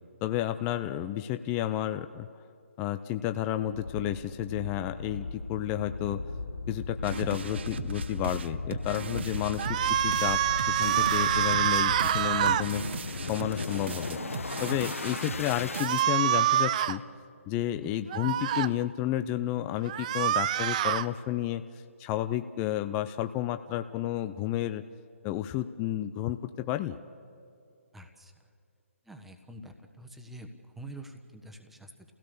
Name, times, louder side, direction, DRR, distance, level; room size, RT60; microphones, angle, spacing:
voice 1, 0.2-2.3 2.8-6.2 6.7-14.2 14.6-17.0 17.5-21.6 22.0-24.8 25.2-27.0, left 13 dB, 20° left, 10 dB, 0.5 m, -31 dB
sound 1, 3.7-15.8, left 3 dB, 70° left, 1.2 m, -37 dB
sound 2, 7.0-16.1, right 5 dB, 50° right, 1.0 m, -39 dB
sound 3, 9.6-12.7 15.8-17.0 18.1-18.7 19.9-21.1, right 11 dB, 30° right, 0.6 m, -26 dB
voice 2, 17.8-18.3 27.9-28.3 29.0-32.1, right 1 dB, 5° right, 5 dB, 1.3 m, -47 dB
30.0 x 16.5 x 6.8 m, 2.5 s
figure-of-eight pair, 145°, 8 cm